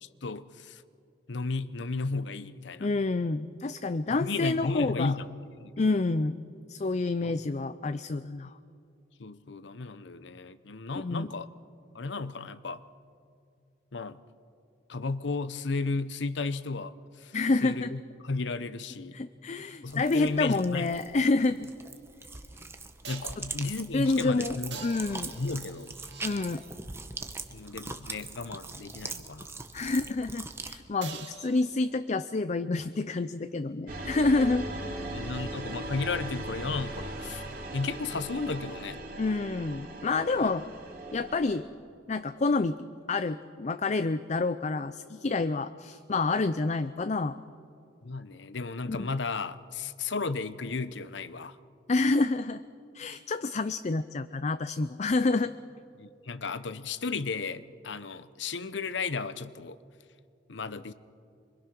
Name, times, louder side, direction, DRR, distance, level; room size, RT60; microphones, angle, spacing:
voice 1, 0.0-0.8 1.3-2.9 4.1-5.3 5.6-5.7 7.2-7.4 9.2-11.5 11.9-12.8 13.9-14.2 14.9-17.3 17.6-19.2 19.8-20.9 23.1-24.8 25.1-25.9 27.5-29.5 35.1-37.4 37.7-39.0 40.3-40.5 48.0-51.6 56.0-59.8 60.5-60.9, left 3 dB, 70° left, 14 dB, 0.8 m, -34 dB
voice 2, 2.8-5.1 5.8-6.4 6.7-8.5 10.9-11.3 17.3-17.9 19.1-21.7 23.9-25.3 26.2-26.6 29.7-34.6 39.2-40.7 41.1-41.7 42.1-42.8 43.1-47.4 48.8-49.1 51.9-52.6 52.9-55.5, left 3 dB, 35° left, 12 dB, 0.5 m, -28 dB
sound 1, 19.9-30.8, right 3 dB, 15° right, 1.0 m, -42 dB
sound 2, 22.0-22.1 23.0-23.5 24.7-26.9 31.0-32.1 36.0-36.1, right 6 dB, 65° right, 2.2 m, -45 dB
sound 3, 33.9-41.6, right 1 dB, 50° right, 3.2 m, -38 dB
26.5 x 24.0 x 6.1 m, 2.4 s
head